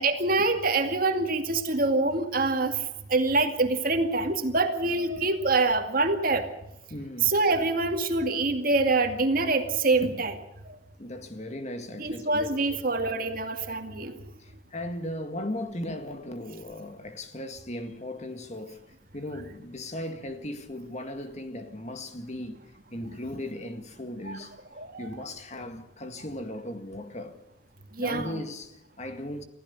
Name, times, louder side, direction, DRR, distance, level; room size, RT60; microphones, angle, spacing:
voice 1, 0.0-2.7 3.1-6.4 7.2-10.4 12.0-14.2 24.2-24.4 24.8-25.3 28.0-28.4, right 3 dB, 45° right, 2.3 m, -25 dB
voice 2, 6.9-7.3 11.0-12.5 14.4-18.8 19.1-24.5 25.0-27.4 28.0-29.4, left 1 dB, 35° left, 2.0 m, -37 dB
26.0 x 15.5 x 7.0 m
head